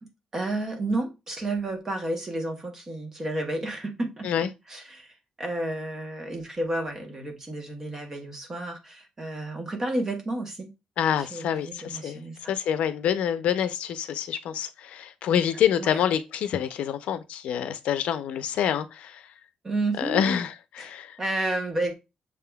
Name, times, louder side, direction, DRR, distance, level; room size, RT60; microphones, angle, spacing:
voice 1, 0.0-10.7 11.2-12.5 15.8-16.0 19.6-20.2 20.8-21.9, right 2 dB, 20° right, 0.9 m, -31 dB
voice 2, 11.0-12.2 12.5-19.2 20.0-21.2, left 9 dB, 75° left, 0.5 m, -27 dB
6.5 x 3.5 x 2.3 m
cardioid pair, 170°, 2 cm